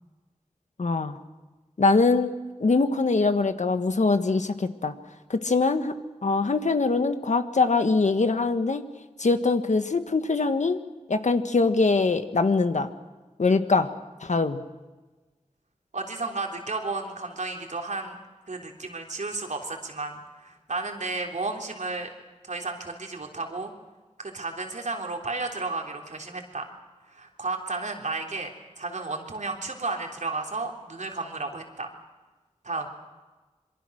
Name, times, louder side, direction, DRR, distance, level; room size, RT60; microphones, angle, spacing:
voice 1, 0.8-1.2 1.8-2.3 2.6-4.9 5.3-5.9 6.2-8.8 9.2-10.8 11.1-12.9 13.4-13.9 14.2-14.6, left 3 dB, 75° left, 9 dB, 1.6 m, -23 dB
voice 2, 15.9-18.2 18.5-22.1 22.5-23.7 24.2-26.7 27.1-28.5 28.8-31.9 32.6-32.9, right 3 dB, 80° right, 2 dB, 3.6 m, -33 dB
26.5 x 23.0 x 6.4 m, 1.2 s
wide cardioid pair, 70°, 12 cm